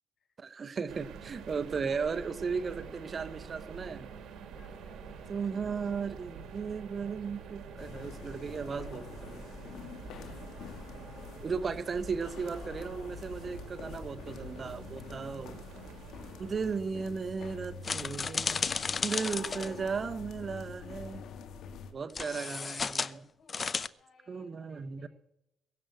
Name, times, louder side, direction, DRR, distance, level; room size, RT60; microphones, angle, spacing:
voice 1, 0.4-4.1 5.3-9.4 11.4-15.5 16.4-18.7 19.0-21.2 21.9-23.3 24.3-25.1, right 5 dB, 40° right, 0.9 m, -36 dB
sound 1, 0.9-16.8, right 6 dB, 75° right, 2.5 m, -47 dB
voice 2, 4.6-5.9 9.5-10.5 11.5-12.2 18.1-19.0 19.4-21.7 22.1-23.0 23.4-25.1, left 5 dB, 55° left, 7.2 m, -62 dB
sound 2, 7.8-21.9, left 7 dB, 75° left, 2.4 m, -46 dB
sound 3, 17.8-19.7 22.1-23.1 23.5-23.9, left 5 dB, 35° left, 0.7 m, -33 dB
22.5 x 7.9 x 7.9 m
cardioid pair, 90°, 0 cm